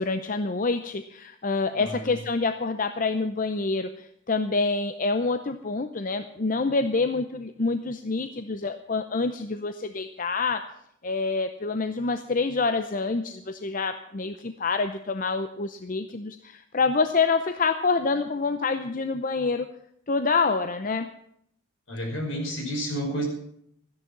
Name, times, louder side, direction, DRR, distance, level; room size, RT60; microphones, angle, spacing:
voice 1, 0.0-10.6 11.0-19.7 20.1-21.1, left 4 dB, 40° left, 9 dB, 0.6 m, -27 dB
voice 2, 1.7-2.1 21.9-23.2, equal, 70° left, 0 dB, 5.7 m, -30 dB
13.5 x 10.5 x 7.4 m, 0.71 s
head